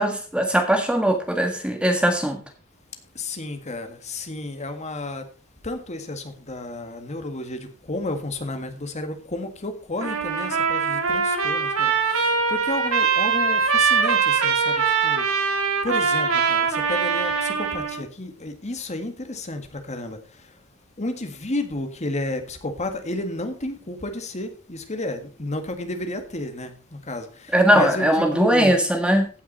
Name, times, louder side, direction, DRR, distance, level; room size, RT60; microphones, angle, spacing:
voice 1, 0.0-2.4 27.5-29.3, right 1 dB, 5° right, 4 dB, 1.5 m, -20 dB
voice 2, 3.1-5.2 5.6-15.5 15.8-20.5 21.0-28.7, left 2 dB, 35° left, 6 dB, 1.8 m, -32 dB
Trumpet, 10.0-18.0, right 5 dB, 90° right, 2.1 m, -22 dB
16.0 x 6.1 x 4.2 m, 0.38 s
head